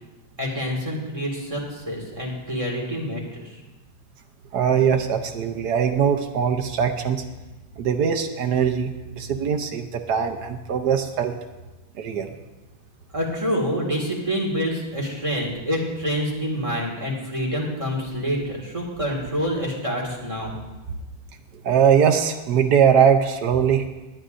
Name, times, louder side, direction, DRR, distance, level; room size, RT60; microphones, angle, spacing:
voice 1, 0.4-3.6 13.1-20.5, equal, 15° right, -2 dB, 1.9 m, -27 dB
voice 2, 4.5-7.2 7.8-11.4 12.0-12.3 21.6-23.8, right 7 dB, 65° right, 6 dB, 1.2 m, -21 dB
20.0 x 9.5 x 2.6 m, 1.1 s
omnidirectional pair, 2.1 m